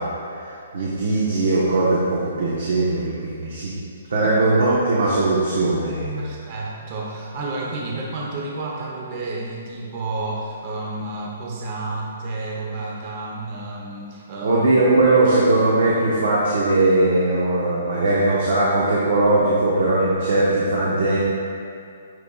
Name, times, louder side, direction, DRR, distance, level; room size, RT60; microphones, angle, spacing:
voice 1, 0.0-3.7 4.1-6.3 14.4-21.2, right 2 dB, 75° right, -6 dB, 1.1 m, -20 dB
voice 2, 6.2-14.6, right 2 dB, 40° right, -3 dB, 0.9 m, -30 dB
9.2 x 4.9 x 2.4 m, 2.5 s
hypercardioid pair, 155°, 0 cm